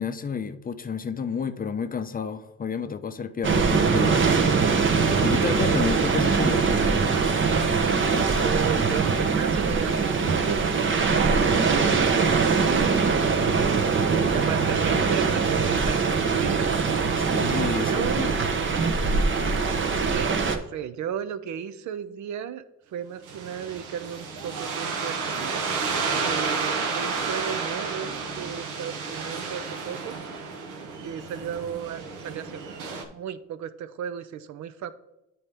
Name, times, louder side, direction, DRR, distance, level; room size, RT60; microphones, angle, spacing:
voice 1, 0.0-4.3 5.2-6.7 17.3-18.5, left 6 dB, 30° left, 0.5 m, -31 dB
sound 1, 3.4-20.6, right 5 dB, 40° right, 0.8 m, -22 dB
voice 2, 8.4-13.8 14.3-17.1 17.8-18.3 20.0-22.6 22.9-25.7 26.2-30.2 31.0-32.7 33.1-34.9, right 9 dB, 70° right, 0.6 m, -35 dB
sound 2, 23.3-33.0, right 4 dB, 85° right, 1.0 m, -31 dB
8.9 x 4.3 x 3.4 m
cardioid pair, 90°, 30 cm